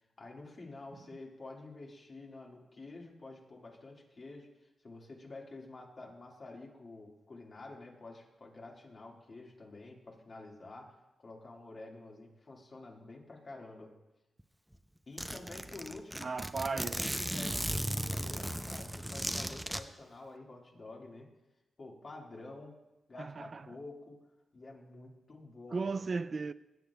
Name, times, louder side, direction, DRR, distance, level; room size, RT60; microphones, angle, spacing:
voice 1, 0.2-4.5 4.8-10.9 11.2-14.0 15.1-16.3 16.7-21.3 21.8-22.8 23.1-24.2 24.5-25.9, left 2 dB, 50° left, 1.9 m, -49 dB
Zipper (clothing), 14.4-14.5 14.7-14.8 15.2-19.8, equal, 5° right, 0.6 m, -36 dB
voice 2, 16.2-17.0 23.2-23.6 25.7-26.5, right 4 dB, 50° right, 0.3 m, -35 dB
16.5 x 7.7 x 2.3 m
supercardioid pair, 50°, 0 cm